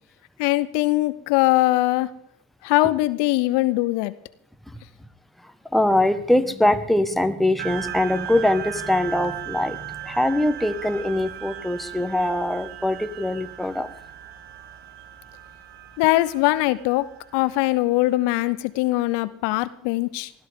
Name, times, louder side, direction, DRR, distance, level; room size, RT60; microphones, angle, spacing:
voice 1, 0.4-2.1 2.6-4.1 16.0-20.3, left 18 dB, 65° left, 16 dB, 0.8 m, -21 dB
voice 2, 5.7-13.9, left 1 dB, ahead, 8 dB, 1.5 m, -22 dB
sound 1, 7.6-18.5, right 11 dB, 70° right, 1.4 m, -38 dB
20.5 x 13.5 x 3.7 m, 0.72 s
hypercardioid pair, 65°, 45 cm